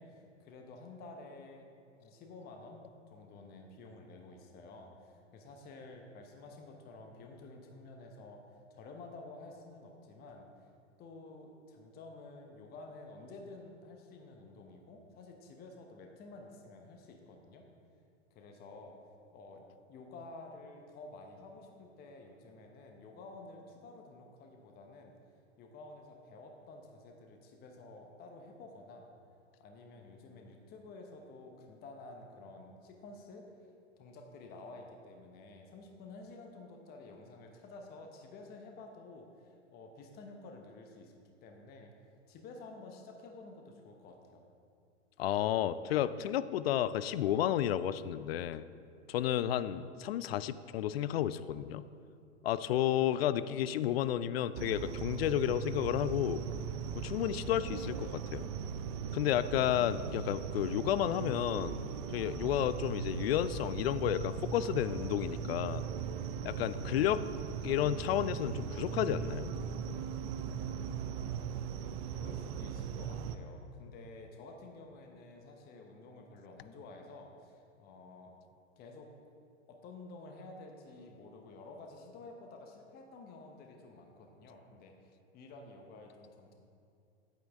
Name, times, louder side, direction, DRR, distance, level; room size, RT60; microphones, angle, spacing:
voice 1, 0.0-1.7 2.0-8.4 8.7-10.7 11.0-17.6 18.3-19.0 19.3-25.1 25.6-29.1 29.6-33.7 34.0-41.1 41.4-41.9 42.3-44.4 71.1-71.4 72.1-78.4 78.8-79.1 79.7-86.5, left 3 dB, 25° left, 3 dB, 1.0 m, -51 dB
voice 2, 45.2-48.7 49.1-51.8 52.4-56.4 57.0-58.5 59.1-61.8 62.1-65.8 66.4-67.2 67.6-69.5, left 11 dB, 55° left, 15 dB, 0.5 m, -32 dB
sound 1, 54.5-73.4, right 7 dB, 35° right, 0.5 m, -39 dB
9.4 x 9.0 x 3.5 m, 2.5 s
hypercardioid pair, 110°, 37 cm